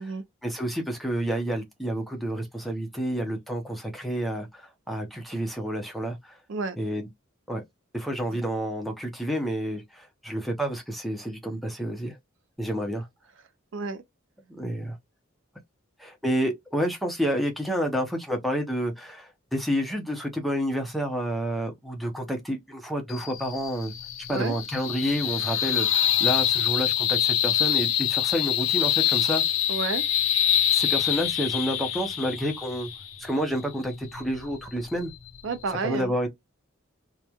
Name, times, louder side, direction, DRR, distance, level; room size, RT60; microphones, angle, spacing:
voice 1, 0.4-6.3 6.8-7.1 7.5-7.6 7.9-12.2 12.6-13.1 14.5-15.0 16.0-23.9 24.3-29.4 30.7-32.9 33.2-35.1 35.8-36.3, equal, ahead, 0.6 m, -29 dB
voice 2, 13.7-14.0 24.3-24.6 29.7-30.0 35.4-36.1, right 4 dB, 65° right, 0.5 m, -30 dB
sound 1, 23.1-35.7, left 11 dB, 75° left, 0.6 m, -26 dB
3.0 x 2.1 x 2.3 m
head